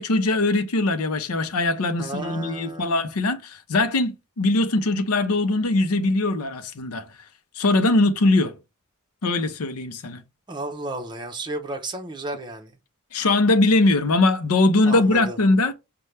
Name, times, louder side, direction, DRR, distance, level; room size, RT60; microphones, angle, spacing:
voice 1, 0.0-7.1 7.6-8.5 9.2-10.2 13.1-15.7, left 2 dB, 70° left, 0.6 m, -21 dB
voice 2, 2.0-3.0 10.5-12.8 14.8-15.4, right 2 dB, 20° right, 0.8 m, -33 dB
5.4 x 2.2 x 3.2 m
head